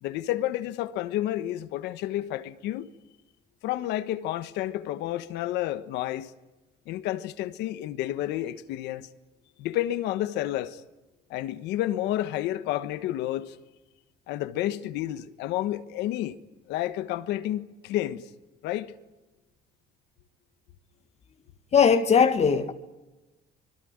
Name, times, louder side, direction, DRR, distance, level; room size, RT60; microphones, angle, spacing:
voice 1, 0.0-2.9 3.6-6.3 6.9-9.1 9.6-10.8 11.3-13.6 14.3-16.4 16.7-18.3 18.6-18.9, left 13 dB, 90° left, 1.3 m, -30 dB
voice 2, 21.7-22.7, left 6 dB, 40° left, 1.6 m, -19 dB
25.5 x 21.0 x 8.9 m
cardioid pair, 110°, 17 cm